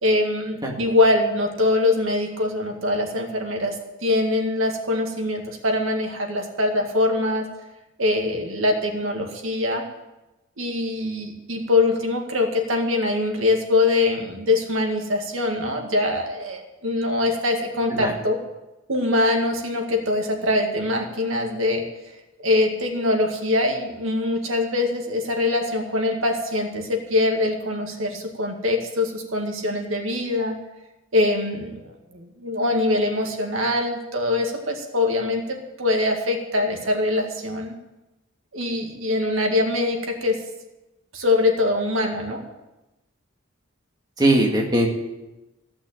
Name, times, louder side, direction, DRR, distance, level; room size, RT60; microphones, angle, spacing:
voice 1, 0.0-3.8 4.0-7.5 8.0-9.8 10.6-18.4 18.9-21.9 22.4-30.6 31.1-37.7 38.5-40.4 41.1-42.4, left 2 dB, 85° right, 2 dB, 2.0 m, -23 dB
voice 2, 44.2-44.9, right 1 dB, 20° right, -1 dB, 1.8 m, -19 dB
15.0 x 6.0 x 9.0 m, 1.0 s
head